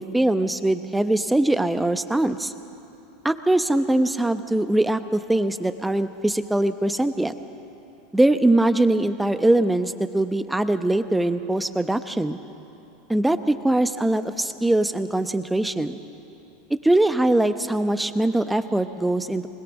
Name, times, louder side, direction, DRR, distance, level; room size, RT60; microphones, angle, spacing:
voice 1, 0.0-2.5 3.2-7.3 8.1-12.4 13.1-16.0 16.8-19.5, right 1 dB, 5° right, 10 dB, 0.9 m, -22 dB
21.0 x 21.0 x 6.3 m, 2.9 s
hypercardioid pair, 85°, 0 cm